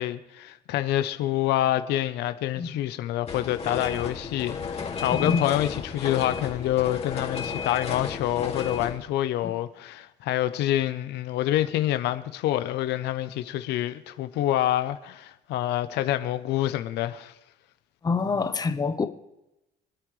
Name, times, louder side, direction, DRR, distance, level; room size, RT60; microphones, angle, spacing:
voice 1, 0.0-17.3, left 13 dB, 85° left, 0.8 m, -27 dB
sound 1, 3.3-8.9, left 5 dB, 40° left, 2.4 m, -33 dB
voice 2, 5.1-5.4 9.4-9.5 18.0-19.1, left 4 dB, 20° left, 0.9 m, -26 dB
27.0 x 9.2 x 3.3 m
cardioid pair, 110°, 17 cm